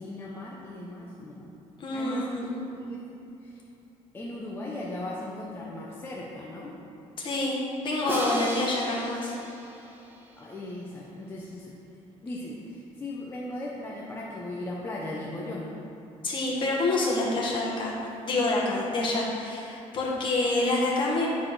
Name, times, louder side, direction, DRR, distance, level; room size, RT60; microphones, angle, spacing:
voice 1, 0.0-1.5 1.9-3.0 3.4-3.6 4.1-6.8 10.4-11.8 12.2-15.8, left 1 dB, 20° left, -5 dB, 0.7 m, -37 dB
voice 2, 1.8-2.4 7.2-9.4 16.2-17.9 18.2-21.3, left 2 dB, 40° left, -3 dB, 1.6 m, -27 dB
Crash cymbal, 8.1-10.3, right 1 dB, 15° right, 1.0 m, -35 dB
9.9 x 4.2 x 4.8 m, 2.9 s
cardioid pair, 145°, 12 cm